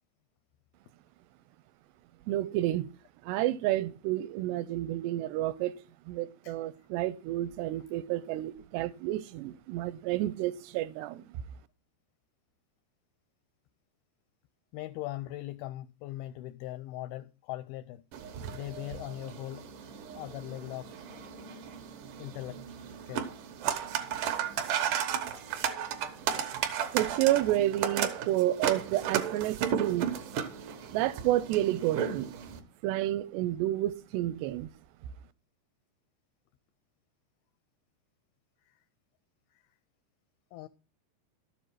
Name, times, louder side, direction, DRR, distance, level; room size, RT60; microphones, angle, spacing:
voice 1, 2.3-2.9 3.2-5.7 6.1-11.3 26.9-30.1 30.9-32.4 32.8-34.7, right 14 dB, 85° right, 2.7 m, -30 dB
voice 2, 14.7-18.0 18.5-20.9 22.2-22.6 23.1-23.3 24.5-24.7 38.7-38.8 40.5-40.7, left 16 dB, 85° left, 2.2 m, -40 dB
sound 1, 18.1-32.6, right 8 dB, 65° right, 2.3 m, -34 dB
12.5 x 7.6 x 4.7 m
omnidirectional pair, 4.9 m